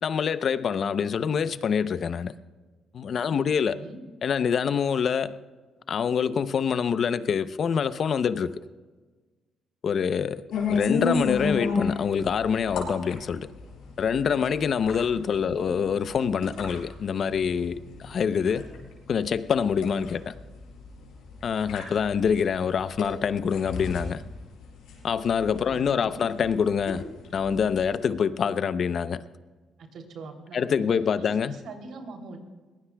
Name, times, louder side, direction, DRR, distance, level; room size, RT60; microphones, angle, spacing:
voice 1, 0.0-2.3 2.9-3.8 4.2-5.4 5.9-8.6 9.8-10.4 10.7-13.5 14.0-18.7 19.1-20.3 21.4-24.2 25.0-27.0 27.3-29.2 30.5-31.6, left 7 dB, 55° left, 0.7 m, -25 dB
voice 2, 3.7-4.0 15.5-15.7 25.7-26.2 29.8-32.4, right 3 dB, 70° right, 3.0 m, -43 dB
sound 1, 10.5-28.1, left 4 dB, 85° left, 4.8 m, -34 dB
22.5 x 18.5 x 2.3 m
cardioid pair, 90°, 0 cm